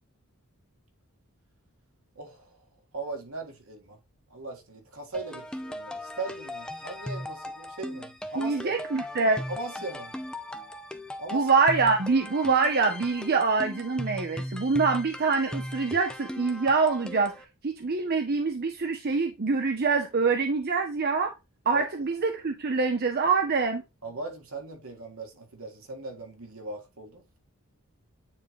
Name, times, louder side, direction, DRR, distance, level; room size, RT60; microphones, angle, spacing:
voice 1, 2.2-2.6 2.9-4.0 4.3-8.7 9.5-10.1 11.2-11.5 21.7-21.8 24.0-27.2, right 3 dB, 70° right, 1.7 m, -39 dB
sound 1, 5.1-17.4, left 1 dB, 5° left, 0.5 m, -38 dB
voice 2, 8.4-9.4 11.3-17.3 17.6-21.3 21.7-23.8, right 4 dB, 45° right, 0.6 m, -25 dB
9.2 x 3.8 x 3.1 m
head